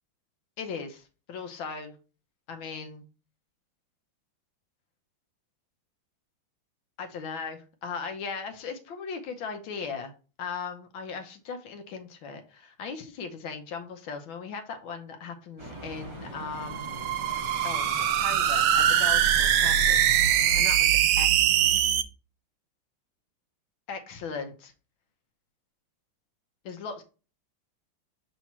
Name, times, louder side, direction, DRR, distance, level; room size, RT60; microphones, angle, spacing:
voice 1, 0.6-1.9 2.5-3.1 7.0-10.1 10.4-16.9 17.6-21.3 23.9-24.7 26.6-27.0, left 5 dB, 85° left, 5 dB, 1.7 m, -38 dB
sound 1, 15.6-20.6, right 1 dB, 15° right, 1.1 m, -42 dB
sound 2, 16.6-22.0, right 10 dB, 90° right, 1.4 m, -22 dB
5.9 x 4.1 x 4.3 m, 0.35 s
omnidirectional pair, 2.1 m